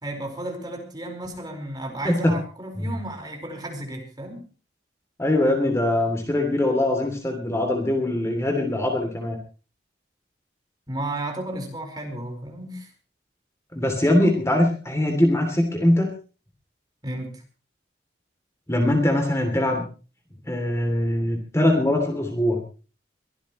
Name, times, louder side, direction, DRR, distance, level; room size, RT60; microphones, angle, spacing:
voice 1, 0.0-4.4 10.9-12.9 17.0-17.4, right 1 dB, 20° right, 2 dB, 4.8 m, -33 dB
voice 2, 5.2-9.4 13.7-16.1 18.7-19.8 20.5-22.6, left 1 dB, 15° left, 3 dB, 3.0 m, -22 dB
23.5 x 16.0 x 3.2 m, 0.36 s
head